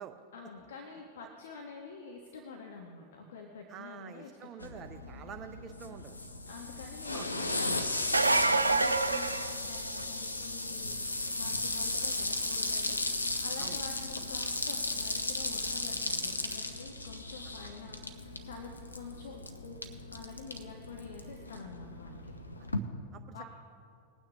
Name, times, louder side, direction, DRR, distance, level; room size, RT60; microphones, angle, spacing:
voice 1, 0.3-4.8 5.5-5.6 6.5-11.0 11.3-19.8 20.1-22.3 23.3-23.4, left 5 dB, 60° left, 2 dB, 1.1 m, -48 dB
voice 2, 3.7-6.2 7.1-7.3 13.6-13.8 22.6-22.7 23.1-23.4, right 8 dB, 30° right, 6 dB, 0.5 m, -47 dB
sound 1, 4.6-22.8, left 2 dB, 80° left, 0.8 m, -36 dB
sound 2, 8.0-10.2 15.7-15.8 17.6-17.7, right 2 dB, 80° right, 0.4 m, -27 dB
20.0 x 9.1 x 3.3 m, 2.5 s
figure-of-eight pair, 90°, 0 cm